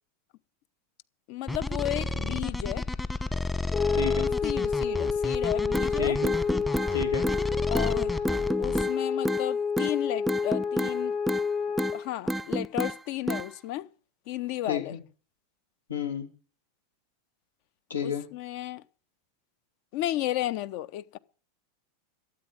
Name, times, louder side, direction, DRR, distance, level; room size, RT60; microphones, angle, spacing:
voice 1, 1.3-2.9 4.4-6.2 7.7-8.2 8.6-11.2 11.9-13.9 14.3-14.9 18.0-18.8 19.9-21.2, left 14 dB, 55° left, 0.9 m, -33 dB
sound 1, 1.5-8.8, left 2 dB, 10° left, 1.3 m, -31 dB
sound 2, 3.7-12.1, left 5 dB, 30° left, 4.9 m, -29 dB
voice 2, 3.9-4.3 6.0-6.4 6.9-7.3 14.6-15.0 15.9-16.3 17.9-18.3, left 7 dB, 85° left, 2.8 m, -31 dB
sound 3, 5.7-5.9 6.2-6.9 7.2-7.4 7.7-7.9 8.2-8.9 9.2-9.4 9.8-9.9 10.3-11.0 11.3-11.5 11.8-12.0 12.3-12.9 13.3-13.5, right 1 dB, 5° right, 0.6 m, -29 dB
12.5 x 9.0 x 8.8 m
hypercardioid pair, 95°, 0 cm